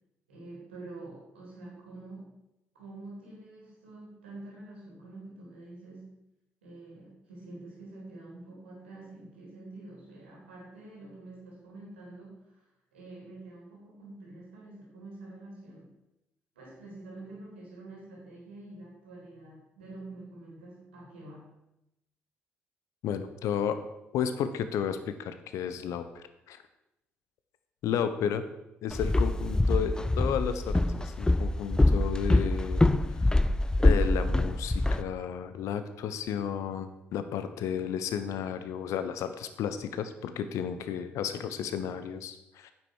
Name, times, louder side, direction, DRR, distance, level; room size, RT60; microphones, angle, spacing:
voice 1, 0.3-2.4 2.7-6.2 6.6-12.5 12.9-16.0 16.6-21.5, right 2 dB, 85° right, -3 dB, 3.6 m, -47 dB
voice 2, 23.0-23.8 24.1-26.6 27.8-28.4 28.8-32.9 33.8-42.7, left 8 dB, 60° left, 10 dB, 1.0 m, -33 dB
Walk footsteps, 28.9-35.0, left 2 dB, 10° left, 0.7 m, -25 dB
9.3 x 7.6 x 6.5 m, 0.87 s
figure-of-eight pair, 50°, 6 cm